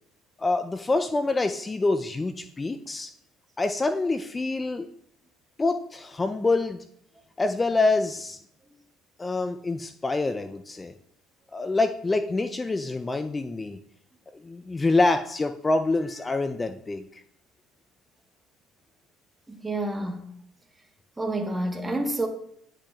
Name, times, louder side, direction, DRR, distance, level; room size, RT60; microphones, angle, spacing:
voice 1, 0.4-3.1 3.6-4.9 5.6-6.8 7.4-8.4 9.2-10.9 11.5-13.8 14.3-17.2, left 3 dB, 25° left, 0.4 m, -26 dB
voice 2, 19.5-20.3 21.2-22.3, right 1 dB, 15° right, 1.2 m, -29 dB
9.8 x 5.9 x 2.3 m
supercardioid pair, 70°, 0 cm